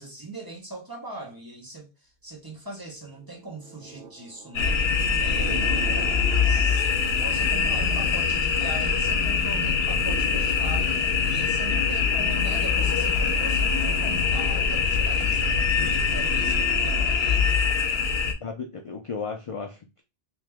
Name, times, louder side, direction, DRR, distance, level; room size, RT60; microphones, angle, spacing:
voice 1, 0.0-1.9 2.2-4.8 5.2-17.6, right 2 dB, 20° right, 1.0 m, -40 dB
sound 1, 3.1-8.7, right 2 dB, 70° right, 0.8 m, -39 dB
sound 2, 4.5-18.3, left 5 dB, 75° left, 0.9 m, -23 dB
voice 2, 5.5-5.9 18.4-20.0, left 5 dB, 50° left, 0.4 m, -35 dB
3.0 x 2.9 x 3.4 m
omnidirectional pair, 1.0 m